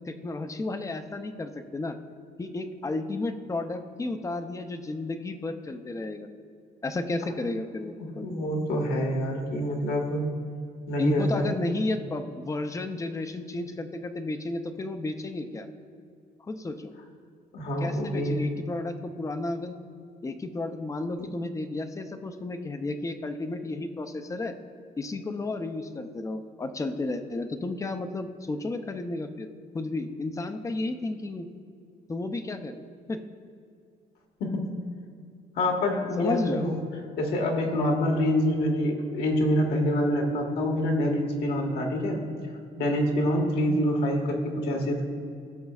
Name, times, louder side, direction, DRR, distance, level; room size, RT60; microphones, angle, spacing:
voice 1, 0.0-2.0 2.4-6.3 6.8-8.3 11.0-15.7 16.4-16.9 17.8-19.8 20.2-24.5 25.0-29.5 29.7-31.5 32.1-32.8 33.1-33.2 36.2-36.7, left 2 dB, 20° left, 8 dB, 0.6 m, -32 dB
voice 2, 8.0-10.2 10.9-11.6 17.5-18.4 21.2-21.3 34.4-34.7 35.6-36.8 37.2-42.2 42.8-45.0, equal, 70° left, 1 dB, 1.6 m, -26 dB
16.0 x 6.6 x 2.4 m, 2.3 s
cardioid pair, 110°, 17 cm